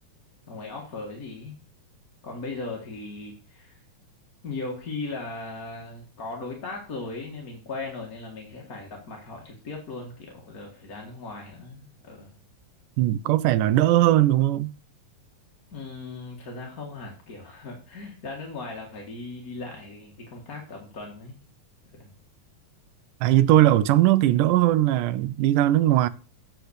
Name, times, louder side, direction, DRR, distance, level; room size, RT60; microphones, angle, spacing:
voice 1, 0.5-1.5 2.2-3.8 4.4-12.4 15.7-21.4 21.9-22.1, left 3 dB, 35° left, 1.6 m, -38 dB
voice 2, 13.0-14.7 23.2-26.1, right 14 dB, 85° right, 2.1 m, -19 dB
8.1 x 5.8 x 6.4 m
omnidirectional pair, 3.7 m